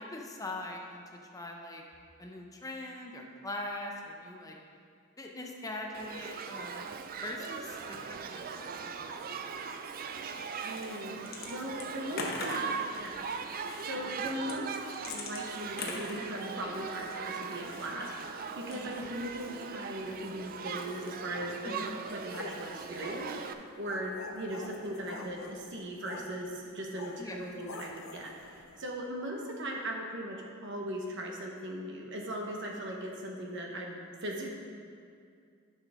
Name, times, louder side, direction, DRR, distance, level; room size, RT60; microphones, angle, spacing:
voice 1, 0.0-1.8 2.2-4.6 5.2-9.3 18.7-18.9 21.6-21.9 27.2-27.4, left 1 dB, 15° left, 0 dB, 0.7 m, -42 dB
Shout / Human group actions, 5.9-23.5, right 5 dB, 45° right, 0.4 m, -40 dB
sound 1, 10.5-11.5 11.8-12.8 13.5-13.9 14.4-16.8 17.6-18.2 18.6-19.0, left 3 dB, 50° left, 1.0 m, -41 dB
voice 2, 10.6-14.8 15.0-34.5, right 1 dB, 60° right, 0 dB, 1.1 m, -39 dB
sound 2, 22.2-28.9, left 3 dB, 70° left, 0.6 m, -47 dB
11.5 x 5.7 x 3.6 m, 2.3 s
head